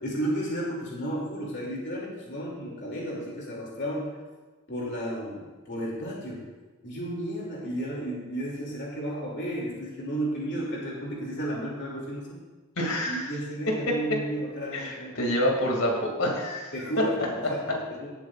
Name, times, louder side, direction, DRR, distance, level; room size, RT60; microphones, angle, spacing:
voice 1, 0.0-4.1 4.7-6.4 6.8-12.4 13.1-15.5 16.7-18.1, right 1 dB, 55° left, -4 dB, 2.6 m, -33 dB
voice 2, 12.8-13.3 13.7-14.2 14.7-17.1 17.4-17.8, left 1 dB, 80° left, 0 dB, 2.4 m, -27 dB
18.0 x 8.2 x 2.5 m, 1.3 s
head